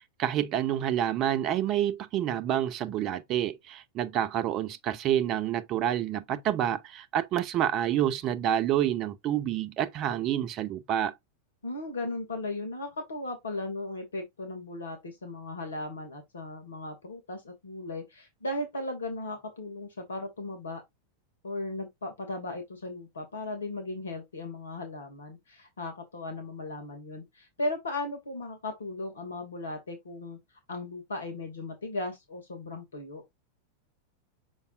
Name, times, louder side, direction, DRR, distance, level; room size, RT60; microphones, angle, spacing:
voice 1, 0.2-11.1, right 11 dB, 35° right, 0.8 m, -28 dB
voice 2, 11.6-20.8 21.4-30.4 30.7-33.2, left 2 dB, 70° left, 2.4 m, -37 dB
6.9 x 5.4 x 2.6 m
figure-of-eight pair, 90°, 0 cm